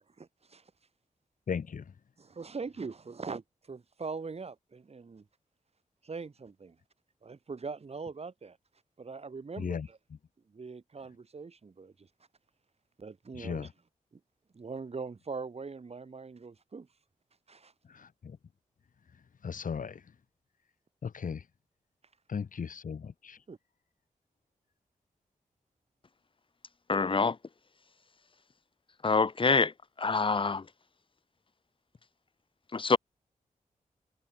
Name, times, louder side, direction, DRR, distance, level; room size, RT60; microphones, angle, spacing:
voice 1, 0.2-0.6 2.2-5.2 6.0-6.8 7.2-8.6 9.0-10.0 10.5-12.1 13.0-13.7 14.5-16.9 17.5-17.7 23.5-23.6, right 4 dB, 45° right, 7.3 m, -42 dB
voice 2, 1.5-1.8 9.6-9.9 13.3-13.7 17.9-18.4 19.4-20.1 21.0-21.5 22.3-23.4, left 6 dB, 70° left, 2.3 m, -36 dB
voice 3, 26.9-27.4 29.0-29.7 30.0-30.6 32.7-33.0, left 4 dB, 40° left, 1.3 m, -25 dB
wide cardioid pair, 135°, 14 cm